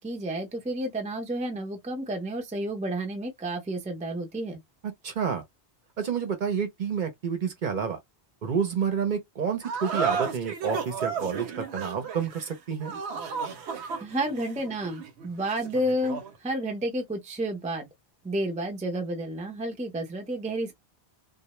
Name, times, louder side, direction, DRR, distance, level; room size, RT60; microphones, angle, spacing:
voice 1, 0.0-4.6 14.0-17.9 18.2-20.7, right 1 dB, 10° right, 0.4 m, -31 dB
voice 2, 5.0-5.4 6.0-8.0 8.4-12.9, right 6 dB, 55° right, 0.7 m, -29 dB
sound 1, 9.6-16.4, right 6 dB, 90° right, 0.9 m, -33 dB
2.1 x 2.0 x 2.9 m
omnidirectional pair, 1.1 m